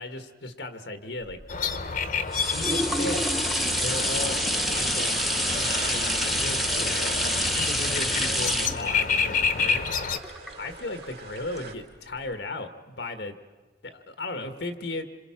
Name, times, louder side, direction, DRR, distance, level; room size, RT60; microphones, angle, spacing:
voice 1, 0.0-1.4 2.5-3.3 3.8-5.1 5.5-7.1 7.5-10.0 10.6-13.4 13.8-15.1, left 2 dB, 85° left, 8 dB, 1.6 m, -36 dB
sound 1, 1.3-11.0 11.6-11.7, equal, ahead, 0.8 m, -28 dB
sound 2, 1.5-10.2, left 5 dB, 50° left, 1.1 m, -29 dB
sound 3, 3.2-11.7, right 4 dB, 60° right, 3.1 m, -43 dB
26.5 x 26.5 x 5.9 m, 1.3 s
head